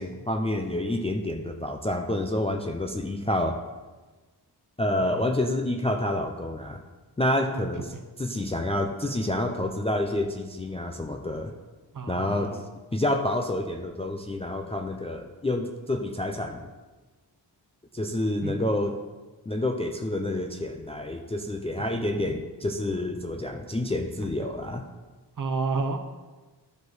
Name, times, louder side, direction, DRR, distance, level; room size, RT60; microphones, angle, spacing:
voice 1, 0.0-3.6 4.8-6.8 7.2-7.9 8.2-11.5 12.1-12.6 12.9-16.7 17.9-19.0 19.5-24.8, left 1 dB, 15° left, 4 dB, 0.3 m, -28 dB
voice 2, 11.9-12.6 18.4-18.7 25.4-26.0, right 4 dB, 50° right, 6 dB, 0.8 m, -30 dB
12.0 x 5.1 x 4.0 m, 1.3 s
wide cardioid pair, 175°, 42 cm